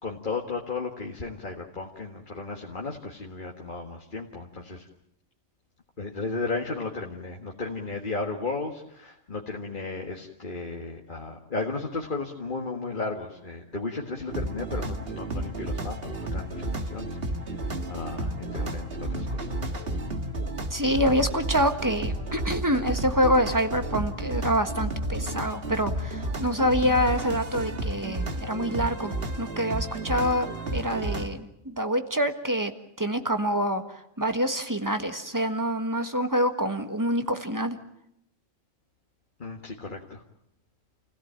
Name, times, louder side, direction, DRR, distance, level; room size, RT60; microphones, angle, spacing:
voice 1, 0.0-4.9 6.0-17.2 17.5-17.6 17.9-19.6 39.4-40.2, left 3 dB, 40° left, 1 dB, 1.8 m, -34 dB
sound 1, 14.3-31.3, right 1 dB, 50° right, 1.9 m, -32 dB
voice 2, 20.7-30.5 30.7-32.7 33.0-37.8, equal, 15° right, 7 dB, 1.5 m, -26 dB
29.0 x 17.0 x 8.9 m, 0.79 s
omnidirectional pair, 1.3 m